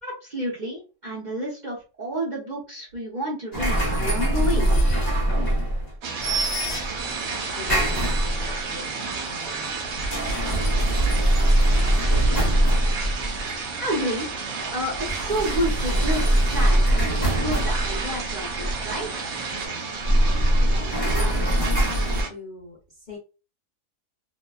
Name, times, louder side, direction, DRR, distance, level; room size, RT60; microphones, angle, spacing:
voice 1, 0.0-4.7 13.8-14.4 14.7-19.1, equal, 45° right, -5 dB, 0.6 m, -30 dB
sound 1, 3.5-5.9 6.2-7.1 7.6-8.6 9.8-13.5 14.9-18.9 20.0-22.2, right 1 dB, 20° left, 0.7 m, -22 dB
voice 2, 5.1-5.6 6.3-7.0 7.5-10.2 19.5-23.2, left 2 dB, 65° left, -2 dB, 0.4 m, -43 dB
sound 2, 6.0-22.3, right 4 dB, 70° right, 1.1 m, -33 dB
sound 3, 7.0-19.7, right 4 dB, 85° right, 1.3 m, -37 dB
2.9 x 2.2 x 2.3 m, 0.33 s
omnidirectional pair, 1.7 m